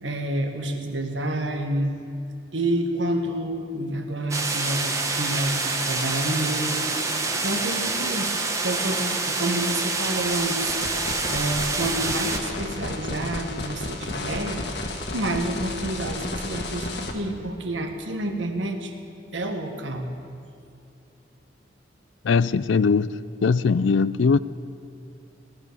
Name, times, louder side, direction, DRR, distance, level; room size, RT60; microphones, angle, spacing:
voice 1, 0.0-2.0 2.5-7.0 7.3-8.4 8.6-14.6 15.1-18.9 19.3-20.1, right 1 dB, 80° right, 5 dB, 1.5 m, -29 dB
sound 1, 4.3-12.4, right 3 dB, 15° right, 1.0 m, -27 dB
sound 2, 10.3-17.1, left 2 dB, 65° left, 1.6 m, -33 dB
voice 2, 22.2-24.4, left 5 dB, 80° left, 17 dB, 0.4 m, -21 dB
17.5 x 12.0 x 6.8 m, 2.5 s
head